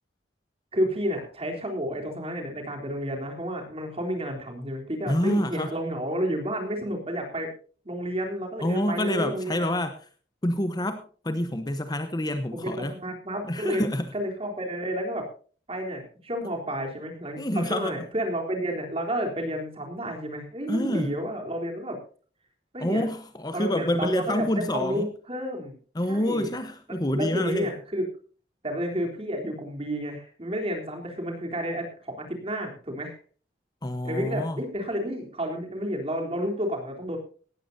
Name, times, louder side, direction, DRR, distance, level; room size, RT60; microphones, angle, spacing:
voice 1, 0.7-7.5 7.9-9.7 12.5-13.8 14.1-15.3 15.7-22.0 22.7-23.0 23.5-25.8 26.1-26.5 27.2-28.1 28.6-33.1 34.0-37.2, equal, 30° right, 2 dB, 3.5 m, -31 dB
voice 2, 5.1-5.7 8.6-9.9 10.4-12.9 13.5-14.1 17.4-18.0 20.7-21.1 22.8-25.1 25.9-27.7 33.8-34.6, left 1 dB, 20° left, 9 dB, 1.0 m, -27 dB
18.0 x 14.0 x 2.7 m, 0.40 s
head